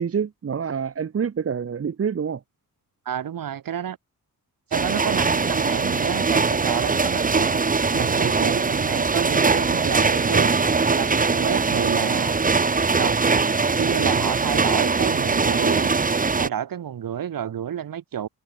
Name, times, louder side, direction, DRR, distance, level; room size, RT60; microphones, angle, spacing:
voice 1, 0.0-2.4, right 7 dB, 40° right, 2.1 m, -26 dB
voice 2, 3.1-4.0 4.7-7.6 7.9-10.5 11.0-12.4 13.0-13.5 13.8-15.9 16.4-18.3, right 9 dB, 65° right, 6.8 m, -29 dB
sound 1, 4.7-16.5, right 4 dB, 25° right, 1.9 m, -21 dB
wide cardioid pair, 165°, 36 cm